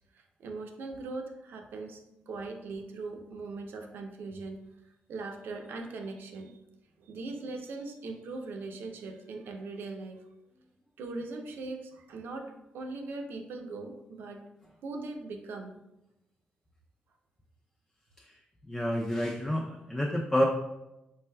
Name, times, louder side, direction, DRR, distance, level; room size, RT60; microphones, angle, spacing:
voice 1, 0.1-4.6 5.1-6.6 7.0-10.2 11.0-14.4 14.8-15.7, right 3 dB, 80° right, 3 dB, 0.5 m, -40 dB
voice 2, 18.7-20.5, equal, 10° left, -1 dB, 0.4 m, -29 dB
4.3 x 3.2 x 2.2 m, 0.92 s
cardioid pair, 70°, 4 cm